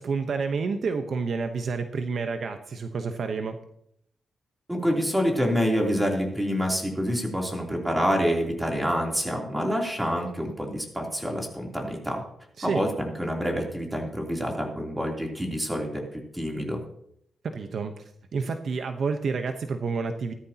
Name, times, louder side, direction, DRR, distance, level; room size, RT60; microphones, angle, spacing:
voice 1, 0.0-3.6 12.6-12.8 17.4-18.0 18.3-20.3, right 4 dB, 60° right, 7 dB, 1.0 m, -29 dB
voice 2, 4.7-12.2 12.6-16.8, equal, 10° right, 0 dB, 3.3 m, -27 dB
15.5 x 13.0 x 2.9 m, 0.72 s
cardioid pair, 105°, 0 cm